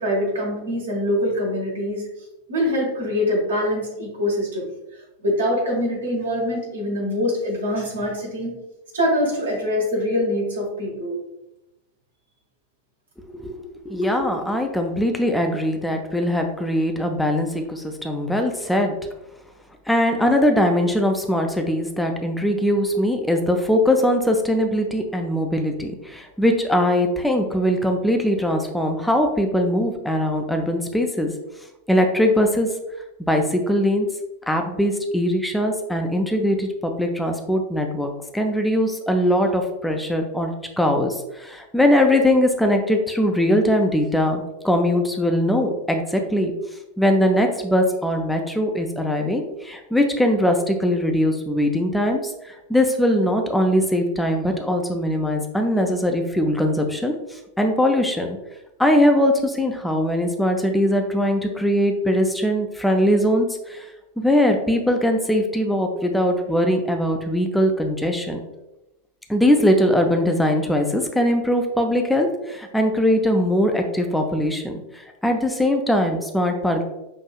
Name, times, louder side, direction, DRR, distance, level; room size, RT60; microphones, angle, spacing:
voice 1, 0.0-2.0 2.5-4.7 5.2-8.5 8.9-11.1, left 1 dB, 70° right, -2 dB, 1.4 m, -24 dB
voice 2, 13.4-18.9 19.9-31.3 31.9-32.7 33.3-34.1 34.5-40.5 40.8-46.5 47.0-52.2 52.7-58.4 58.8-63.9 64.2-68.4 69.3-76.8, equal, 5° left, 3 dB, 0.5 m, -21 dB
5.6 x 2.6 x 2.4 m, 0.95 s
figure-of-eight pair, 90°, 0 cm